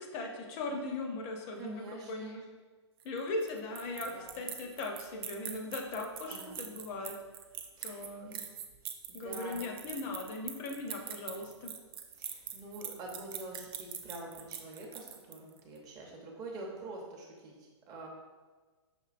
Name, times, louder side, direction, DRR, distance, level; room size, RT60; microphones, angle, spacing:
voice 1, 0.1-2.4 3.0-7.2 7.8-8.4 9.1-11.7, left 2 dB, 35° left, 2 dB, 0.6 m, -39 dB
voice 2, 1.6-2.4 4.0-4.3 6.3-6.6 7.8-8.4 9.1-9.7 12.2-18.1, right 2 dB, 25° right, -1 dB, 0.8 m, -46 dB
sound 1, 3.0-15.6, right 9 dB, 55° right, 0.4 m, -43 dB
6.0 x 2.7 x 2.5 m, 1.4 s
hypercardioid pair, 125°, 15 cm